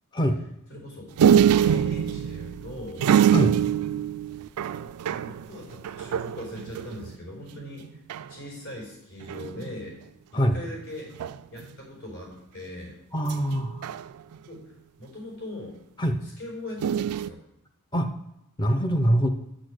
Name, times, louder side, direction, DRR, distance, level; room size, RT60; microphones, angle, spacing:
voice 1, 0.7-1.1 1.6-3.0 5.0-7.8 8.3-10.0 10.3-11.1 11.5-13.0 14.5-14.6 15.0-15.7 16.4-17.4, left 1 dB, 70° left, -1 dB, 4.5 m, -40 dB
sound 1, 1.2-7.2 7.5-7.6 7.8-8.3 9.2-9.8 11.2-11.7 13.3-14.6 16.8-17.3, right 9 dB, 85° right, 0.3 m, -24 dB
voice 2, 13.1-13.9 16.0-16.2 17.9-18.1 18.6-19.3, equal, 20° left, 6 dB, 0.5 m, -23 dB
8.7 x 6.3 x 6.4 m, 0.84 s
head